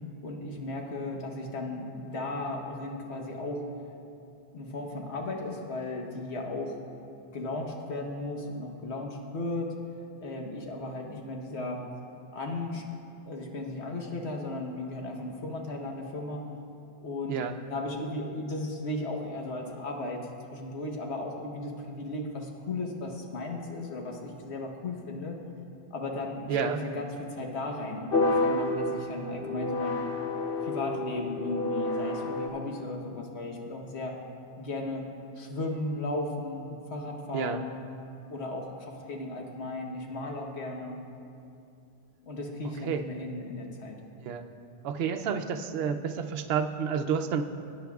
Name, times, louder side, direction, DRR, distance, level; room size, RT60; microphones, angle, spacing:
voice 1, 0.2-3.7 4.5-6.8 7.3-9.7 10.2-11.8 12.3-12.9 13.2-16.5 17.0-17.4 17.7-20.2 20.5-25.4 25.9-30.0 30.6-34.1 34.6-35.1 35.4-37.7 38.3-41.0 42.2-44.0, left 2 dB, 90° left, 1 dB, 1.4 m, -35 dB
voice 2, 26.5-26.8 37.3-37.6 42.8-43.0 44.2-44.4 44.8-47.4, right 7 dB, 70° right, 7 dB, 0.8 m, -29 dB
sound 1, 28.1-32.5, left 2 dB, 65° left, 0.9 m, -29 dB
17.5 x 9.5 x 2.3 m, 2.6 s
omnidirectional pair, 1.1 m